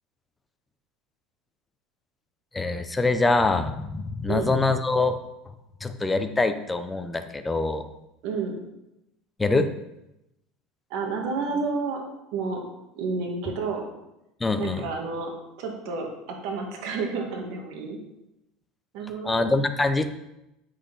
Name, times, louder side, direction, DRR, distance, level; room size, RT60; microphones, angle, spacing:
voice 1, 2.5-5.2 5.8-7.9 9.4-9.7 14.4-14.8 19.2-20.1, left 3 dB, 10° left, 8 dB, 0.7 m, -24 dB
voice 2, 8.2-8.6 10.9-12.0 12.3-12.6 13.0-13.9 14.6-15.3 15.6-18.0 18.9-19.4, right 4 dB, 65° right, 2 dB, 2.0 m, -30 dB
8.2 x 6.4 x 5.5 m, 0.89 s
supercardioid pair, 145°, 0 cm